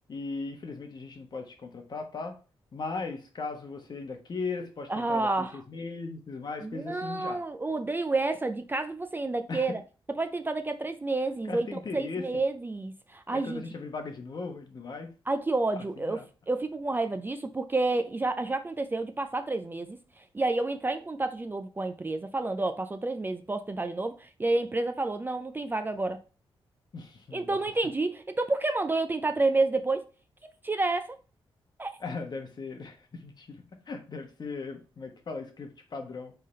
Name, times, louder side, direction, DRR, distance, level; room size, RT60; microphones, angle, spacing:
voice 1, 0.1-2.4 2.7-7.4 9.5-9.7 11.5-12.2 13.3-15.1 15.7-16.3 26.9-27.6 32.0-36.3, left 4 dB, 45° left, 1.1 m, -38 dB
voice 2, 4.9-5.5 6.6-9.8 10.2-11.7 11.9-13.6 15.3-16.2 16.5-26.2 27.3-30.1 30.6-31.2 31.8-31.9, right 2 dB, 20° right, 0.4 m, -29 dB
3.7 x 3.4 x 4.2 m
cardioid pair, 85°, 10 cm